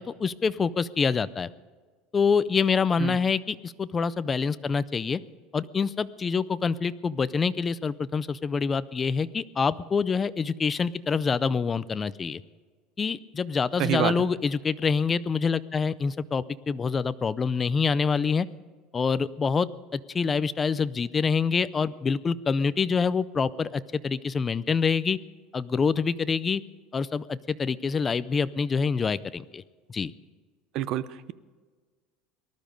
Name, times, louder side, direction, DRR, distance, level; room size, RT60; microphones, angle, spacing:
voice 1, 0.0-1.5 2.1-5.2 5.5-12.4 13.0-18.5 18.9-25.2 25.5-26.6 26.9-29.6 29.9-30.1, left 5 dB, 20° left, 16 dB, 0.4 m, -26 dB
voice 2, 13.8-14.1 30.7-31.3, right 12 dB, 45° right, 16 dB, 0.6 m, -27 dB
19.0 x 12.5 x 5.2 m, 1.4 s
cardioid pair, 160°, 0 cm